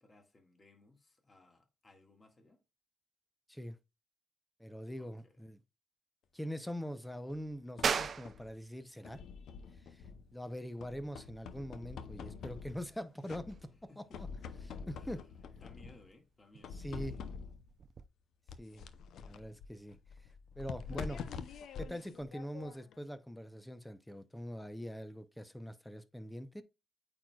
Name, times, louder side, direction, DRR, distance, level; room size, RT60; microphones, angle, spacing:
voice 1, 0.0-2.6 5.0-5.3 13.9-14.2 15.0-15.2 15.6-16.8, left 2 dB, 30° left, 1.9 m, -61 dB
voice 2, 4.6-5.6 6.3-9.2 9.8-10.0 10.3-14.3 14.6-15.2 16.7-17.2 18.6-18.9 19.2-20.0 20.6-21.2 21.8-26.6, equal, 5° left, 0.7 m, -43 dB
sound 1, 7.3-8.5 9.0-10.4 10.8-13.0 13.3-13.8 14.1-16.1 16.6-17.7 18.5-23.0, left 6 dB, 70° left, 0.6 m, -46 dB
sound 2, 7.8-18.1, right 6 dB, 50° right, 0.5 m, -43 dB
8.6 x 4.6 x 2.3 m
cardioid pair, 90°, 0 cm